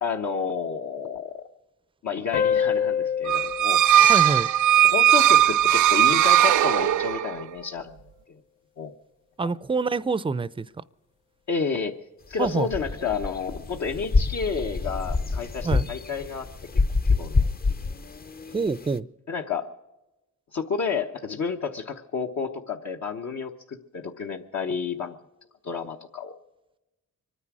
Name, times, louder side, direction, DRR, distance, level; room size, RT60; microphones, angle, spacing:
voice 1, 0.0-1.4 2.0-3.8 4.8-7.9 8.3-8.4 8.8-8.9 9.4-9.5 11.5-11.9 12.3-16.5 17.2-17.5 19.3-19.7 20.5-25.1 25.6-26.4, left 5 dB, 65° left, 1 dB, 1.1 m, -30 dB
sound 1, 2.3-5.5, left 8 dB, 80° left, 0.8 m, -28 dB
sound 2, 3.3-7.4, right 11 dB, 70° right, 0.5 m, -18 dB
voice 2, 4.0-4.5 9.4-10.7 12.4-12.7 15.6-15.9 18.5-19.1, right 4 dB, 15° right, 19 dB, 0.5 m, -26 dB
sound 3, 12.3-19.0, left 4 dB, 30° left, 0.7 m, -27 dB
24.0 x 9.7 x 6.1 m, 0.98 s
cardioid pair, 75°, 31 cm